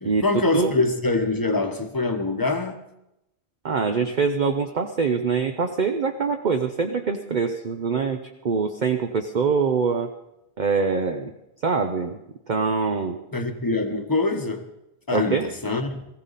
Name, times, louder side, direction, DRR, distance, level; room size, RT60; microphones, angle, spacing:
voice 1, 0.0-2.8 13.3-14.6 15.1-16.1, left 3 dB, 20° left, 6 dB, 1.1 m, -24 dB
voice 2, 3.6-8.2 8.4-10.1 10.6-11.3 11.6-12.2 12.5-13.2 15.1-15.5, right 5 dB, 50° right, 5 dB, 0.9 m, -24 dB
20.0 x 15.5 x 4.1 m, 0.87 s
omnidirectional pair, 1.1 m